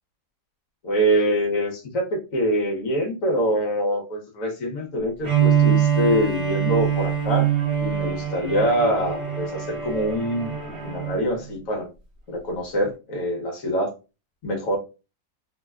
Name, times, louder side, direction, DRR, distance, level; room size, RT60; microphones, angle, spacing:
voice 1, 0.8-7.5 7.8-10.5 10.8-11.9 12.3-13.9 14.4-14.8, equal, 60° left, 1 dB, 1.1 m, -24 dB
Bowed string instrument, 5.2-11.3, right 9 dB, 50° right, 0.9 m, -24 dB
3.4 x 2.1 x 2.3 m, 0.31 s
omnidirectional pair, 1.8 m